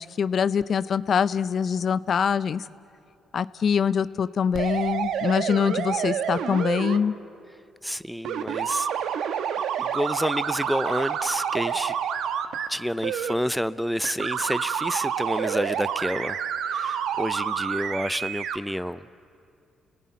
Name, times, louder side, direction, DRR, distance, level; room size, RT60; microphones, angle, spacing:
voice 1, 0.0-2.7 3.3-7.2, left 7 dB, 55° left, 16 dB, 0.5 m, -24 dB
sound 1, 4.5-7.0 8.2-12.7 13.0-13.3 14.0-18.6, right 8 dB, 80° right, 1.2 m, -28 dB
voice 2, 7.8-8.9 9.8-11.9 12.7-16.4 16.7-19.1, equal, ahead, 15 dB, 0.6 m, -29 dB
29.5 x 18.5 x 9.5 m, 2.5 s
cardioid pair, 75°, 0 cm